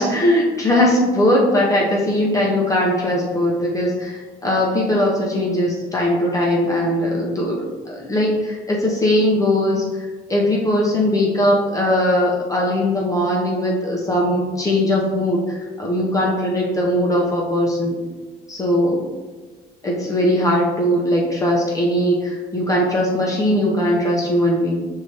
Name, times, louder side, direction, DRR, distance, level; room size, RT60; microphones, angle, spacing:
voice 1, 0.0-18.0 18.5-19.0 19.8-24.8, left 1 dB, 20° left, -3 dB, 0.7 m, -19 dB
5.0 x 2.7 x 3.2 m, 1.3 s
cardioid pair, 110°, 17 cm